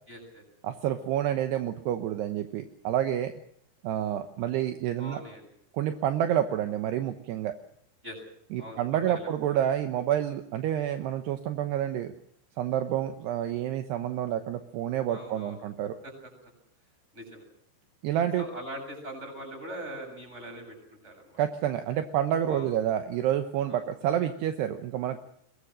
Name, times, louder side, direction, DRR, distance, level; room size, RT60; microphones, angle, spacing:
voice 1, 0.1-0.4 5.0-5.5 8.0-8.2 8.6-9.6 15.1-15.6 16.0-16.1 17.1-17.5 18.4-20.8 21.0-21.4 22.5-22.7 23.7-23.8, right 1 dB, 15° right, 4 dB, 7.5 m, -41 dB
voice 2, 0.6-3.3 3.8-5.2 5.7-7.6 8.5-12.1 12.6-15.9 18.0-18.4 21.4-25.2, right 11 dB, 75° right, 7 dB, 2.9 m, -28 dB
23.0 x 21.0 x 6.5 m, 0.68 s
omnidirectional pair, 5.4 m